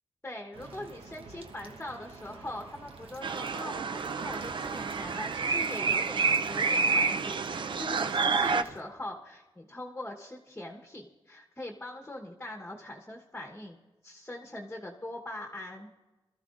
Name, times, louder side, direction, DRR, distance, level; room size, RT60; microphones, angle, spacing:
voice 1, 0.2-13.8 14.0-15.9, left 1 dB, 15° left, 1 dB, 1.1 m, -42 dB
sound 1, 0.5-8.8, right 3 dB, 80° right, 1.0 m, -49 dB
sound 2, 3.2-8.6, right 4 dB, 60° right, 0.4 m, -29 dB
22.0 x 13.5 x 2.5 m, 1.2 s
wide cardioid pair, 80°, 9 cm